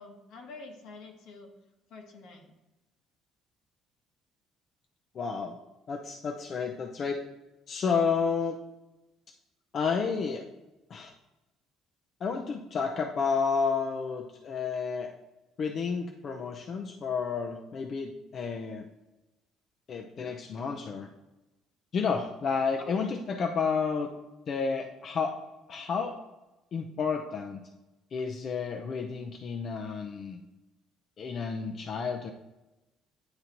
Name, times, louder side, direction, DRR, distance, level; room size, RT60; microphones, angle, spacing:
voice 1, 0.0-1.5 1.9-2.5 22.8-22.9, left 3 dB, 80° left, 2 dB, 1.2 m, -47 dB
voice 2, 5.1-5.5 5.9-7.2 7.7-8.6 9.7-10.4 10.9-11.1 12.2-15.1 15.6-18.8 19.9-21.1 21.9-24.1 24.5-25.4 25.7-26.1 26.7-27.6 28.1-30.4 31.2-32.3, left 5 dB, 50° left, 3 dB, 0.5 m, -31 dB
9.5 x 3.9 x 2.9 m, 1.0 s
cardioid pair, 95°, 0 cm